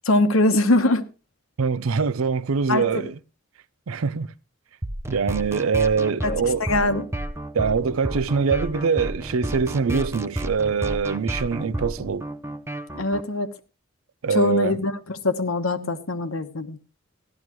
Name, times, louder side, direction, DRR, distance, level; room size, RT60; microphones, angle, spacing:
voice 1, 0.0-1.0 2.7-2.9 6.2-7.1 12.9-13.5 14.3-16.8, left 2 dB, 90° left, 1.2 m, -22 dB
voice 2, 1.6-3.1 3.9-4.3 5.1-6.7 7.5-12.3 14.2-14.8 15.7-15.9, right 5 dB, 90° right, 0.5 m, -24 dB
sound 1, 4.8-13.2, right 1 dB, 15° right, 0.6 m, -31 dB
15.5 x 12.0 x 3.1 m
head